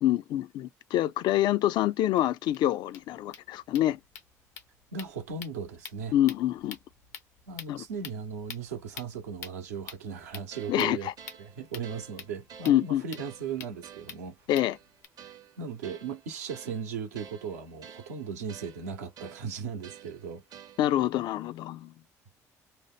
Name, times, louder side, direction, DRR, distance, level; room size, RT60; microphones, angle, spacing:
voice 1, 0.0-4.0 6.1-6.8 7.7-7.8 10.7-11.1 12.7-13.0 14.5-14.8 20.8-21.9, left 13 dB, 65° left, 0.4 m, -26 dB
sound 1, 1.8-1.9 2.2-2.3 2.5-2.6 2.8-15.1, left 8 dB, 85° left, 0.8 m, -48 dB
voice 2, 4.9-6.1 7.5-11.1 11.4-14.4 15.6-20.4, right 6 dB, 85° right, 0.7 m, -37 dB
sound 2, 10.5-21.1, right 8 dB, 50° right, 0.6 m, -51 dB
2.9 x 2.0 x 3.1 m
hypercardioid pair, 55°, 8 cm